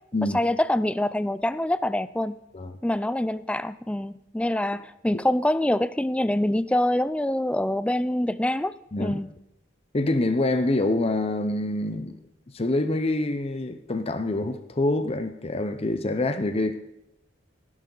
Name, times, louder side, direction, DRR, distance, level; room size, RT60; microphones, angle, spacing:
voice 1, 0.3-2.4 2.8-8.7 9.0-9.3, left 1 dB, 5° left, 15 dB, 0.4 m, -25 dB
voice 2, 9.9-12.2 12.5-16.8, left 2 dB, 30° left, 9 dB, 0.8 m, -26 dB
17.5 x 11.0 x 4.0 m, 0.87 s
head